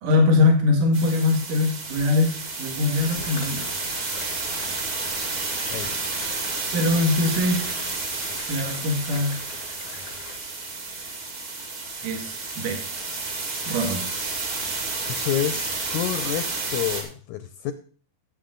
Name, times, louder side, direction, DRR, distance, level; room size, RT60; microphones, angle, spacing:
voice 1, 0.0-3.7 6.7-7.7 8.5-9.4 12.0-12.8 13.6-14.1, left 3 dB, 70° right, 3 dB, 3.4 m, -22 dB
sound 1, 0.9-17.0, right 3 dB, 40° right, 2.9 m, -31 dB
sound 2, 2.0-2.1 3.0-10.4, left 4 dB, 60° left, 0.7 m, -43 dB
voice 2, 15.1-17.7, left 11 dB, 75° left, 11 dB, 1.8 m, -29 dB
15.5 x 7.6 x 3.9 m, 0.42 s
omnidirectional pair, 3.9 m